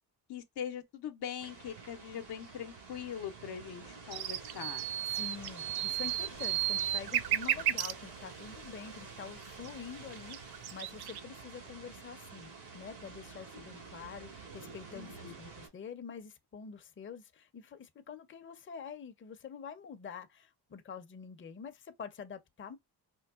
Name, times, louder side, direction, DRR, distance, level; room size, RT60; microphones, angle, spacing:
voice 1, 0.3-4.8 14.9-15.3, left 8 dB, 70° left, 0.7 m, -42 dB
sound 1, 1.4-15.7, right 4 dB, 85° right, 1.8 m, -49 dB
sound 2, 4.1-7.9 9.6-9.7 10.1-11.2, right 12 dB, 65° right, 0.5 m, -33 dB
voice 2, 5.1-22.8, left 6 dB, 30° left, 0.6 m, -46 dB
4.5 x 2.2 x 2.3 m
cardioid pair, 80°, 41 cm